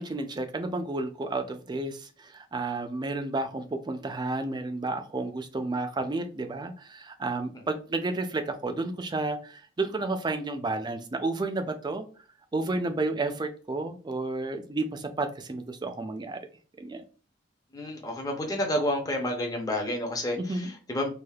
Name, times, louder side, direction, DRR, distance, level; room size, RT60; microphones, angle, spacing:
voice 1, 0.0-12.1 12.5-16.4 16.8-17.0 20.4-20.7, right 2 dB, 25° right, 0.4 m, -31 dB
voice 2, 17.7-21.1, left 1 dB, 20° left, 0.6 m, -30 dB
3.3 x 2.4 x 2.3 m
head